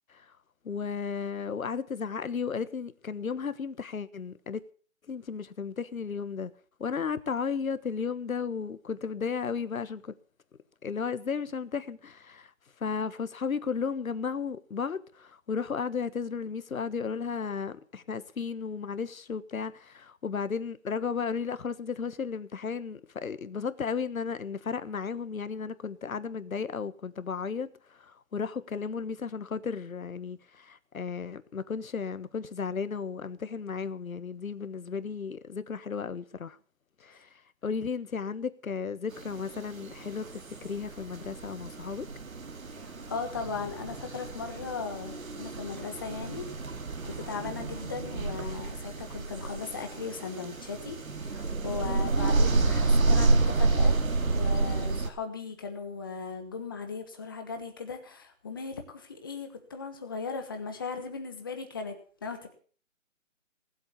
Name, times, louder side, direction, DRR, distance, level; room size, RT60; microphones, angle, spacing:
voice 1, 0.6-4.6 5.1-6.5 6.8-10.1 10.8-12.5 12.8-36.6 37.0-37.3 37.6-42.1, left 6 dB, 90° left, 1.4 m, -34 dB
sound 1, 39.1-55.1, right 3 dB, 80° right, 2.5 m, -29 dB
voice 2, 42.7-46.5 47.0-54.0 54.3-62.5, left 5 dB, 15° left, 1.2 m, -37 dB
18.5 x 8.0 x 7.2 m
hypercardioid pair, 175°, 40 cm